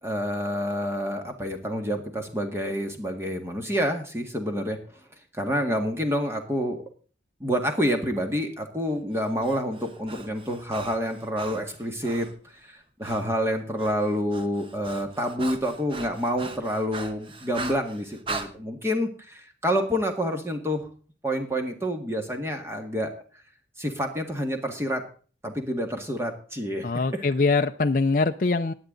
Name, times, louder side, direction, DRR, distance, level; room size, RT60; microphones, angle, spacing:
voice 1, 0.0-4.8 5.3-6.8 7.4-12.3 12.6-20.8 21.2-23.1 23.8-25.0 25.4-26.9 27.1-27.2, equal, 15° right, 4 dB, 1.9 m, -28 dB
Breathing, 9.1-12.4 13.0-13.3 13.5-18.5, right 3 dB, 30° right, 1.2 m, -39 dB
voice 2, 26.8-28.7, left 3 dB, 50° left, 6 dB, 0.5 m, -23 dB
16.0 x 9.8 x 3.9 m, 0.40 s
head